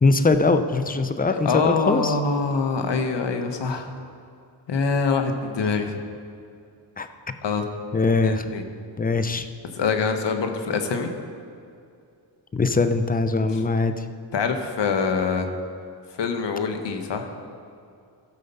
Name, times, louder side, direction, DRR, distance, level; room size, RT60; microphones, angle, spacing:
voice 1, 0.0-2.1 7.0-7.1 7.9-8.4 9.0-9.5 12.5-14.0, left 3 dB, 20° left, 10 dB, 0.7 m, -21 dB
voice 2, 1.3-3.9 4.7-6.0 7.4-7.6 8.2-8.6 9.7-11.1 13.5-13.6 14.3-15.5 16.2-17.3, left 5 dB, 65° left, 6 dB, 1.3 m, -24 dB
14.5 x 6.6 x 5.6 m, 2.4 s
cardioid pair, 65°, 46 cm